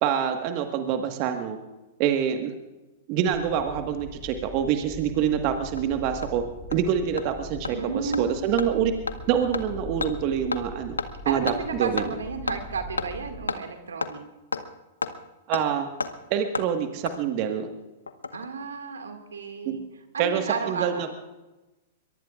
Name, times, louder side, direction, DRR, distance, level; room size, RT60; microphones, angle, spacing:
voice 1, 0.0-1.6 2.0-2.5 3.1-6.4 6.7-7.8 8.0-8.9 9.3-11.0 11.2-12.0 15.5-15.9 16.3-17.7 19.6-19.8 20.2-21.1, right 8 dB, 45° right, 5 dB, 1.6 m, -26 dB
sound 1, 3.2-13.5, left 1 dB, 35° left, 5.3 m, -42 dB
Hammer, 5.3-5.4 5.8-5.9 6.2-6.3 6.7-6.8 7.2-7.3 7.6-7.7 8.1-8.2 8.6-8.7 9.1-9.2 9.5-9.6 10.0-10.1 10.5-10.6 11.0-11.1 11.5-11.6 12.0-12.1 12.5-12.6 13.0-13.1 13.5-13.6 14.0-14.1 14.5-14.6 15.0-15.1 15.5-15.6 16.0-16.1 16.5-16.7 17.1-17.2 18.1-18.5 18.7-18.8, left 4 dB, 90° left, 0.9 m, -29 dB
voice 2, 7.7-8.3 11.2-14.2 18.3-19.8 20.1-21.1, right 5 dB, 80° right, 5 dB, 2.1 m, -32 dB
22.5 x 22.5 x 2.5 m, 1.1 s
hypercardioid pair, 110°, 0 cm